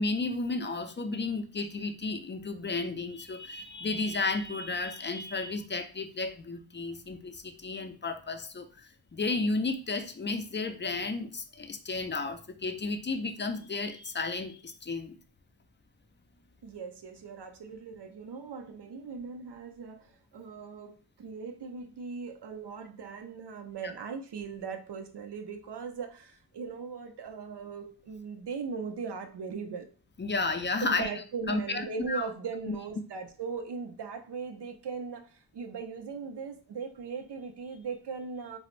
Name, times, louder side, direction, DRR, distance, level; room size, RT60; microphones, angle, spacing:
voice 1, 0.0-15.2 23.8-23.9 30.2-31.1 31.5-32.3 32.7-32.8, left 3 dB, 30° left, 8 dB, 0.3 m, -33 dB
voice 2, 16.6-29.9 30.8-38.6, right 5 dB, 80° right, 6 dB, 0.5 m, -39 dB
4.1 x 2.0 x 2.5 m, 0.39 s
wide cardioid pair, 55°, 40 cm